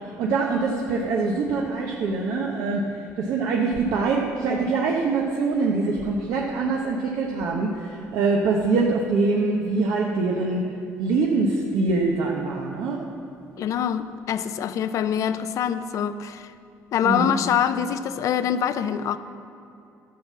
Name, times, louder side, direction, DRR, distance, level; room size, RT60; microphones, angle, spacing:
voice 1, 0.2-2.8 3.2-10.6 11.0-13.1 17.0-17.3, right 3 dB, 75° right, -1 dB, 1.0 m, -24 dB
voice 2, 13.6-16.5 16.9-19.2, left 9 dB, 60° left, 12 dB, 0.5 m, -25 dB
11.5 x 5.8 x 7.4 m, 2.7 s
cardioid pair, 100°, 6 cm